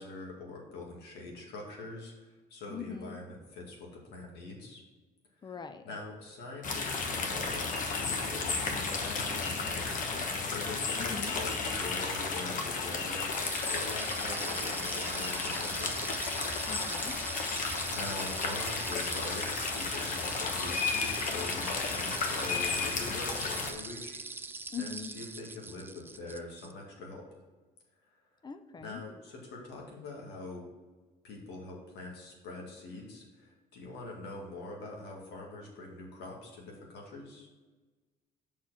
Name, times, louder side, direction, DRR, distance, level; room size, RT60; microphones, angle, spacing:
voice 1, 0.0-4.8 5.4-10.1 10.4-13.3 13.7-15.9 17.4-24.2 24.8-27.2 28.8-30.6 31.2-37.5, left 2 dB, 80° left, -1 dB, 2.2 m, -44 dB
voice 2, 2.7-3.2 5.4-5.8 11.0-11.3 16.7-17.1 24.7-25.1 28.4-29.0, left 6 dB, 25° left, 10 dB, 0.6 m, -41 dB
sound 1, 6.6-23.7, left 4 dB, 50° left, 1.2 m, -33 dB
sound 2, 13.3-26.7, right 3 dB, 15° right, 0.3 m, -42 dB
6.0 x 4.4 x 5.8 m, 1.3 s
cardioid pair, 110°, 17 cm